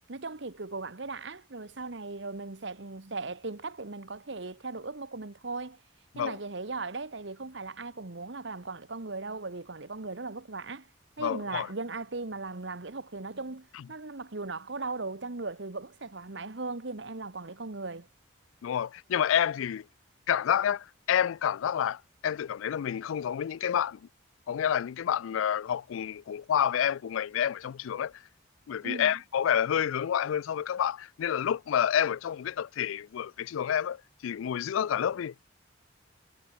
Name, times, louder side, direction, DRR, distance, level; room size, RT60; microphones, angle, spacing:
voice 1, 0.1-5.8 6.1-10.9 11.2-18.1 28.8-29.1, right 3 dB, 65° right, 1.3 m, -38 dB
voice 2, 11.2-11.7 13.7-13.8 18.6-19.9 20.3-24.0 24.5-28.2 28.7-35.4, left 9 dB, 85° left, 0.3 m, -29 dB
head